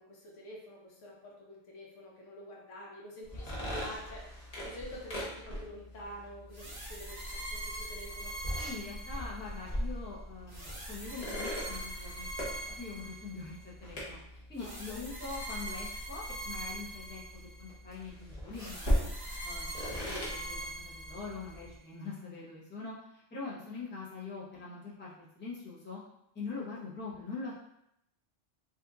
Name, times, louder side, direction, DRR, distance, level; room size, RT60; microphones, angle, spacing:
voice 1, 0.0-4.3 4.6-8.3 14.6-15.1, equal, 80° left, -2 dB, 1.1 m, -48 dB
sound 1, 3.2-21.8, equal, 35° left, 0.9 m, -40 dB
sound 2, 6.5-9.7 10.5-13.6 14.6-17.7 18.5-21.6, right 1 dB, 20° right, 0.7 m, -42 dB
voice 2, 8.5-12.3 12.7-19.1 19.4-26.0 26.3-27.5, left 4 dB, 15° left, -6 dB, 0.5 m, -43 dB
2.9 x 2.5 x 3.5 m, 0.78 s
omnidirectional pair, 1.3 m